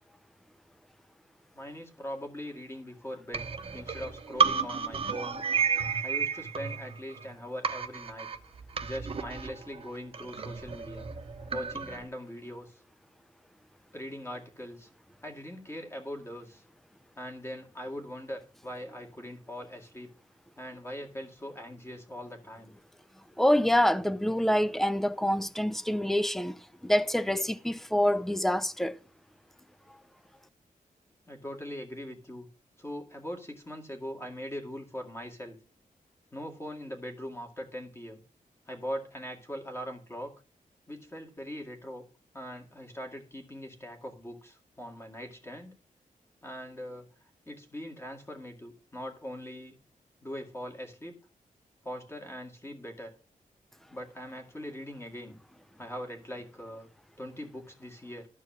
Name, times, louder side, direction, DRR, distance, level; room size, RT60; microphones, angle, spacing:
voice 1, 1.5-3.4 3.7-5.4 6.0-8.3 8.8-11.1 11.5-12.7 13.9-14.9 15.2-16.6 17.2-20.1 20.6-22.7 31.3-32.5 32.8-35.6 36.3-38.2 38.7-40.3 40.9-42.0 42.3-45.7 46.4-47.1 47.5-49.7 50.2-51.2 51.8-53.1 53.9-55.3 55.8-56.9 57.2-58.3, equal, 20° left, 2.2 m, -41 dB
sound 1, 3.3-7.3 7.6-12.0, right 5 dB, 40° right, 1.0 m, -32 dB
voice 2, 23.4-26.6 26.8-29.0, left 1 dB, ahead, 0.5 m, -26 dB
13.5 x 4.7 x 7.3 m
wide cardioid pair, 145°, 14 cm